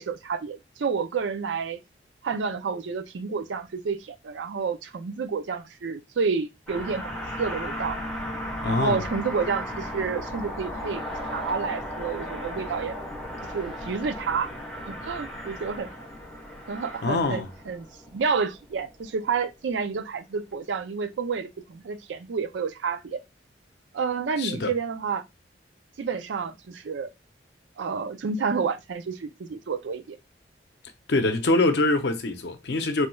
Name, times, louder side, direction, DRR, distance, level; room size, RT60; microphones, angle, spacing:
voice 1, 0.0-1.8 2.2-8.0 8.7-13.0 13.5-14.5 14.9-15.9 16.7-17.9 18.1-23.2 23.9-25.2 26.0-27.1 27.8-30.2, right 5 dB, 85° right, 0.4 m, -30 dB
sound 1, 6.7-19.3, equal, 5° left, 1.1 m, -36 dB
voice 2, 8.6-9.0 17.0-17.5 24.4-24.7 31.1-33.1, left 2 dB, 65° left, 0.6 m, -24 dB
3.1 x 3.1 x 2.2 m
head